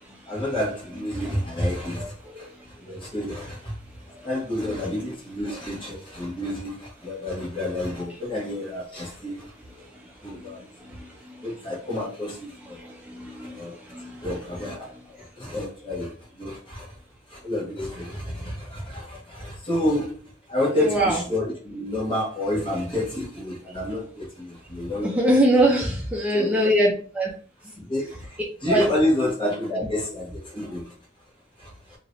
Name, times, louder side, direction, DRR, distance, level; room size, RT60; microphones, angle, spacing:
voice 1, 0.3-2.5 2.8-3.7 4.2-9.5 10.2-10.6 11.4-12.8 13.6-13.8 14.2-16.9 17.3-25.2 26.3-26.7 27.8-30.9 31.6-31.7, left 1 dB, 30° left, 1.3 m, -29 dB
voice 2, 2.0-2.5 10.3-11.4 12.8-14.3 20.8-21.2 25.0-27.3 28.7-28.8, right 1 dB, 10° right, 0.5 m, -24 dB
3.3 x 2.8 x 2.6 m
head